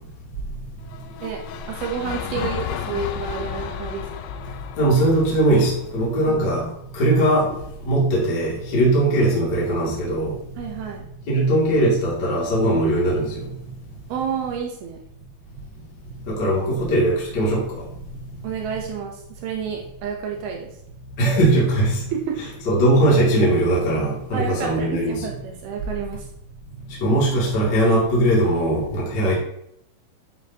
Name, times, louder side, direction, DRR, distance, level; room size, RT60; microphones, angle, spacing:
sound 1, 0.8-7.0, left 9 dB, 85° left, 2.6 m, -33 dB
voice 1, 1.7-4.3 6.3-6.4 10.6-11.1 14.1-15.0 18.4-20.7 22.1-22.4 24.3-26.3, right 6 dB, 80° right, 1 dB, 2.2 m, -30 dB
voice 2, 4.8-6.7 6.9-7.5 7.8-10.3 11.3-13.3 16.3-17.6 21.2-22.0 22.7-25.2 27.0-29.4, right 1 dB, 30° left, -6 dB, 2.1 m, -19 dB
12.0 x 7.3 x 2.9 m, 0.75 s
omnidirectional pair, 5.9 m